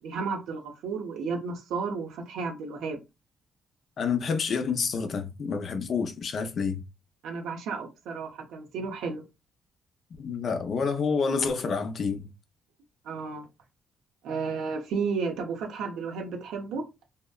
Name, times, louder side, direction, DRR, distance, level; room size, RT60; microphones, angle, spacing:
voice 1, 0.0-3.0 7.2-9.2 13.0-13.5 14.2-16.9, right 5 dB, 85° right, 0.6 m, -33 dB
voice 2, 4.0-6.8 10.2-12.3, left 5 dB, 55° left, 0.5 m, -28 dB
2.7 x 2.1 x 2.2 m
cardioid pair, 90°, 0 cm